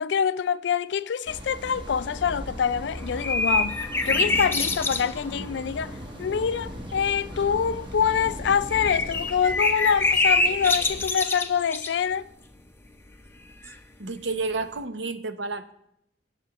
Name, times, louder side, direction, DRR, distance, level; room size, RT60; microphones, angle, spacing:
voice 1, 0.0-12.3, left 7 dB, 70° left, 0.4 m, -25 dB
sound 1, 1.3-11.1, equal, 25° right, 1.1 m, -38 dB
sound 2, 3.0-5.4 5.7-5.8 6.2-6.3 7.3-7.7 8.7-11.9 13.6-13.7, left 2 dB, 15° left, 0.6 m, -25 dB
voice 2, 14.0-15.7, right 3 dB, 70° right, 0.7 m, -30 dB
18.0 x 7.2 x 2.9 m
head